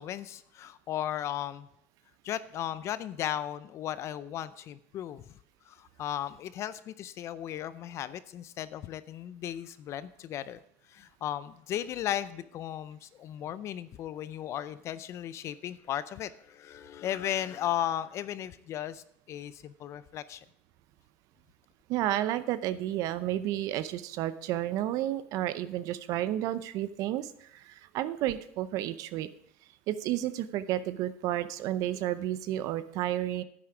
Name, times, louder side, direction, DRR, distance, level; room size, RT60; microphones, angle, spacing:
voice 1, 0.0-1.7 2.2-5.2 5.7-10.6 10.9-20.4, left 11 dB, 45° left, 15 dB, 0.5 m, -36 dB
voice 2, 21.9-29.3 29.9-33.4, right 13 dB, 55° right, 13 dB, 0.6 m, -31 dB
10.0 x 8.6 x 4.9 m, 0.70 s
supercardioid pair, 115°, 7 cm